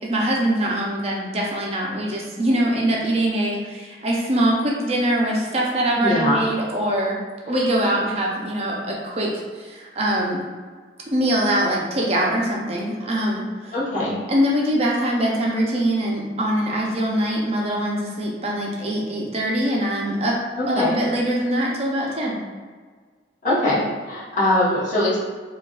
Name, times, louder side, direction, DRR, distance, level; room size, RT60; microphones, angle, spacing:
voice 1, 0.0-7.2 7.5-10.4 11.1-13.7 14.3-20.4 20.7-22.4, right 1 dB, 35° right, -2 dB, 0.7 m, -23 dB
voice 2, 5.9-6.4 13.7-14.1 20.5-21.0 23.4-25.2, left 1 dB, 45° left, -10 dB, 1.4 m, -22 dB
4.5 x 2.6 x 2.4 m, 1.5 s
head